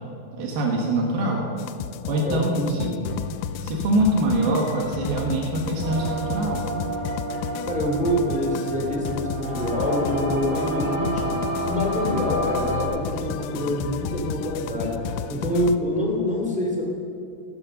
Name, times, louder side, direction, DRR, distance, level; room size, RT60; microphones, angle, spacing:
voice 1, 0.3-1.4 2.1-3.0 3.6-6.6, right 1 dB, 75° right, -1 dB, 3.4 m, -24 dB
sound 1, 1.6-15.8, left 10 dB, 90° left, 1.9 m, -33 dB
voice 2, 2.0-3.0 7.6-11.4 11.7-15.0 15.3-16.8, equal, ahead, -1 dB, 1.9 m, -26 dB
sound 2, 5.8-12.9, right 2 dB, 50° right, 3.4 m, -30 dB
16.0 x 13.0 x 6.5 m, 2.6 s
omnidirectional pair, 4.5 m